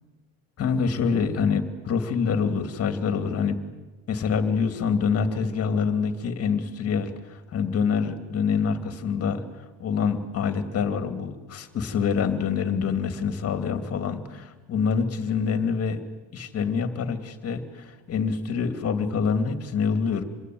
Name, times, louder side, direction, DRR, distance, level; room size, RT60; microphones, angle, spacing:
voice 1, 0.6-3.6 4.1-16.0 16.3-20.2, left 6 dB, 35° left, 8 dB, 2.6 m, -26 dB
26.5 x 21.5 x 9.5 m, 1.2 s
cardioid pair, 155°, 42 cm